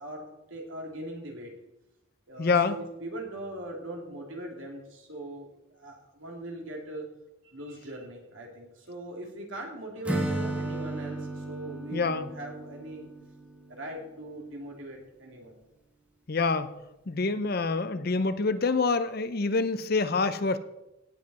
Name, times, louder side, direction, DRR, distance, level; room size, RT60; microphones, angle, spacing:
voice 1, 0.0-1.5 2.3-5.5 5.7-7.1 7.4-13.1 13.7-15.6, right 1 dB, 70° right, 1 dB, 2.7 m, -40 dB
voice 2, 2.4-2.7 11.9-12.3 16.3-16.7 17.1-20.6, left 4 dB, 45° left, 12 dB, 0.6 m, -26 dB
Acoustic guitar / Strum, 10.0-14.0, right 1 dB, 5° right, 1.3 m, -34 dB
17.0 x 7.6 x 4.2 m, 0.94 s
head